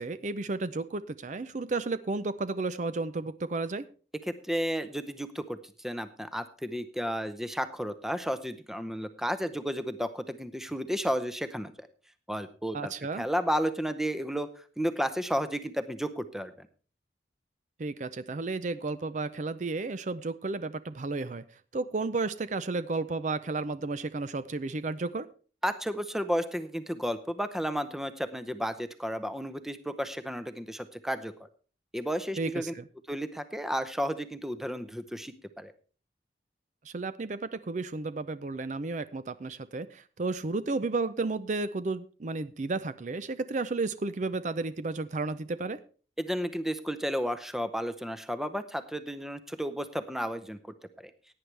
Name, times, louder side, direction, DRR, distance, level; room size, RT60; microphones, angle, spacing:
voice 1, 0.0-3.9 12.7-13.3 17.8-21.4 21.7-25.3 32.4-32.9 36.8-45.8, right 3 dB, 45° right, 14 dB, 0.5 m, -32 dB
voice 2, 4.3-11.9 12.3-14.5 14.8-16.7 25.6-31.3 31.9-32.7 33.1-35.7 46.2-50.6 51.0-51.1, equal, ahead, 11 dB, 0.7 m, -32 dB
17.0 x 9.6 x 3.3 m, 0.39 s
head